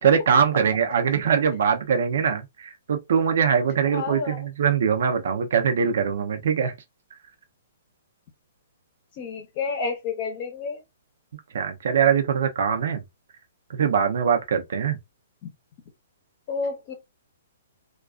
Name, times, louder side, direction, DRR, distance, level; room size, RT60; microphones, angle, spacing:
voice 1, 0.0-6.7 11.5-13.0 13.7-15.0, right 7 dB, 65° right, 0.6 m, -22 dB
voice 2, 3.9-4.5 9.2-10.8 15.4-15.5 16.5-16.9, left 4 dB, 35° left, 0.8 m, -30 dB
2.4 x 2.2 x 2.4 m
hypercardioid pair, 165°, 0 cm